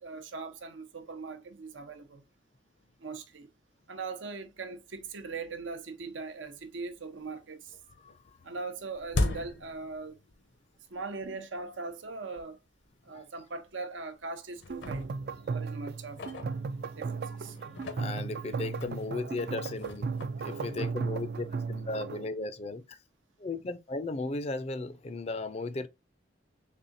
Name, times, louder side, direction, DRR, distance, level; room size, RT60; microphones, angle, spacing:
voice 1, 0.0-2.2 3.0-3.5 3.9-7.8 8.4-10.2 10.9-12.6 13.0-15.1 15.5-16.5 16.9-17.6, right 4 dB, 85° right, 0.8 m, -40 dB
sound 1, 6.3-6.4 6.8-7.4 7.7-10.6 10.9-11.0 11.7-11.8 12.4-12.5 12.8-13.0 13.7-14.2 14.5-17.1 17.6-21.5, left 2 dB, 70° left, 0.7 m, -39 dB
voice 2, 8.0-8.4 13.1-13.2 16.8-17.0 17.4-20.1 20.4-23.0 23.4-25.9, left 3 dB, 35° left, 0.4 m, -36 dB
sound 2, 14.7-22.3, right 5 dB, 55° right, 0.3 m, -36 dB
4.2 x 3.5 x 2.6 m
head